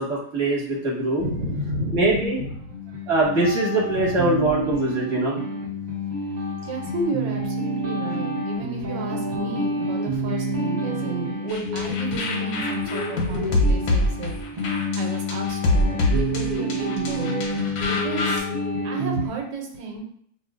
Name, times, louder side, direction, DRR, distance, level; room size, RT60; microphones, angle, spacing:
voice 1, 0.0-1.2 1.9-2.4 3.1-5.3, right 2 dB, 20° right, -5 dB, 0.9 m, -22 dB
voice 2, 1.2-3.0 3.9-4.5 6.1-18.5 18.8-20.0, right 2 dB, 85° right, 1 dB, 1.4 m, -33 dB
sound 1, 2.7-19.3, equal, 45° right, 0.5 m, -29 dB
sound 2, 9.5-12.2 12.5-15.5 15.7-19.3, left 2 dB, 40° left, 1.0 m, -36 dB
sound 3, 11.5-18.4, left 1 dB, 85° left, 1.4 m, -25 dB
5.0 x 2.4 x 2.4 m, 0.65 s
omnidirectional pair, 1.8 m